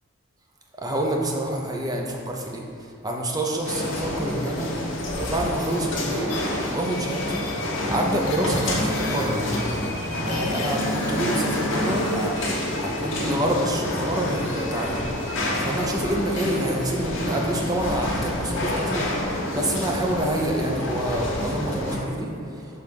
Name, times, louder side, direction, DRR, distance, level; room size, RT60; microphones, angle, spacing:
voice 1, 0.8-2.6 3.0-4.7 5.2-6.4 6.7-7.5 7.9-9.4 10.2-12.3 12.8-15.1 15.6-19.1 19.5-22.3, right 1 dB, 15° right, 0 dB, 0.6 m, -27 dB
sound 1, 3.6-22.0, left 1 dB, 55° left, 1.1 m, -28 dB
sound 2, 6.3-6.7 7.2-9.6 10.3-12.5, left 1 dB, 80° left, 1.0 m, -31 dB
6.4 x 3.5 x 5.2 m, 2.4 s
head